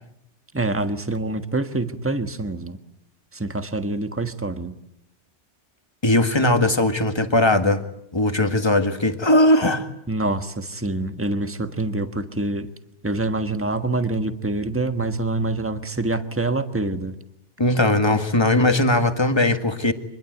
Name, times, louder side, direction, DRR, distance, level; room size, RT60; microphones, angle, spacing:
voice 1, 0.5-2.8 3.3-4.8 10.1-12.7 13.0-17.2, right 2 dB, 10° right, 9 dB, 1.4 m, -26 dB
voice 2, 6.0-7.8 8.1-9.9 17.6-19.9, left 1 dB, 20° left, 7 dB, 1.9 m, -19 dB
25.5 x 21.5 x 9.3 m, 0.78 s
omnidirectional pair, 1.2 m